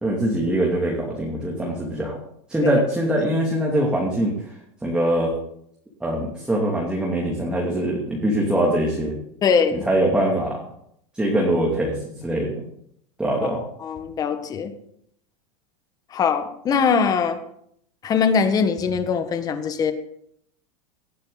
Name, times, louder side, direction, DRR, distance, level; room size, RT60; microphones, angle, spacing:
voice 1, 0.0-2.2 2.5-4.3 4.8-5.3 6.0-9.1 9.8-10.6 11.1-12.5 13.2-13.6, right 1 dB, 5° right, -3 dB, 2.7 m, -22 dB
voice 2, 9.4-9.8 13.8-14.7 16.1-17.4 18.0-19.9, left 6 dB, 25° left, 8 dB, 1.5 m, -21 dB
19.0 x 11.5 x 4.0 m, 0.70 s
supercardioid pair, 150°, 16 cm